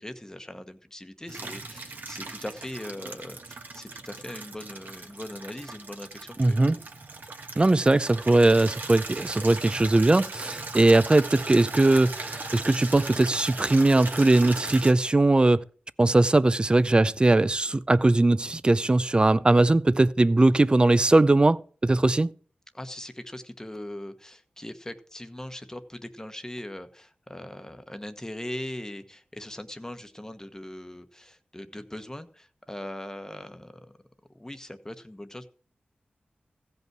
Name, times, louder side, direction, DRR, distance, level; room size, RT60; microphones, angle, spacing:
voice 1, 0.0-6.8 22.7-33.9 34.3-35.5, left 1 dB, 15° left, 1.1 m, -40 dB
Water tap faucet / Liquid, 1.3-14.9, right 3 dB, 60° right, 1.4 m, -38 dB
voice 2, 6.4-6.8 7.6-15.6 16.0-22.3, right 2 dB, 30° right, 0.5 m, -20 dB
15.5 x 5.5 x 6.0 m
wide cardioid pair, 70°, 4 cm